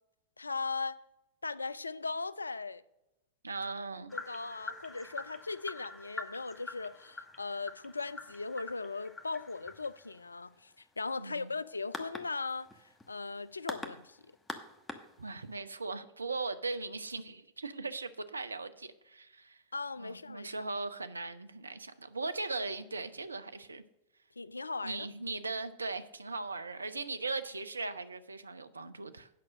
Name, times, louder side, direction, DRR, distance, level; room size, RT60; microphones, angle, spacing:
voice 1, 0.4-1.0 1.4-2.8 4.1-12.7 13.1-14.2 19.7-20.5 24.4-25.1, left 4 dB, 80° left, 0.3 m, -38 dB
voice 2, 3.4-4.2 11.2-11.6 15.2-19.6 20.0-23.8 24.8-29.3, right 3 dB, 80° right, 0.6 m, -39 dB
sound 1, 4.1-15.6, left 3 dB, 10° left, 1.0 m, -46 dB
8.8 x 6.0 x 6.1 m
figure-of-eight pair, 90°, 0 cm